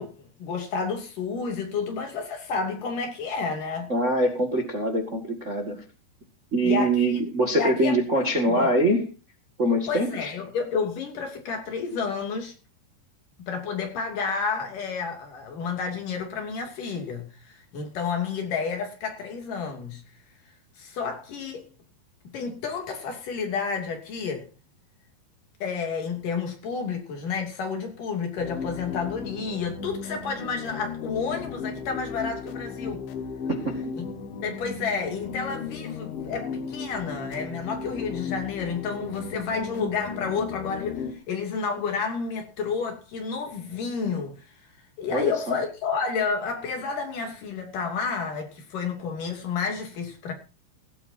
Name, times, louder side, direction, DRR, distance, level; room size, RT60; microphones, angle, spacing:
voice 1, 0.0-3.9 6.6-7.0 7.6-8.0 8.4-8.7 9.9-12.5 13.5-20.0 20.8-21.7 22.3-24.5 25.6-33.0 34.0-34.1 34.4-44.4 45.0-50.3, left 5 dB, 50° left, 4.0 m, -30 dB
voice 2, 3.9-5.8 6.5-9.0 9.6-10.3 33.5-33.9 45.1-45.6, right 1 dB, 75° right, 0.6 m, -24 dB
sound 1, 28.4-41.1, left 5 dB, 90° left, 3.8 m, -36 dB
17.0 x 16.5 x 2.8 m
omnidirectional pair, 5.2 m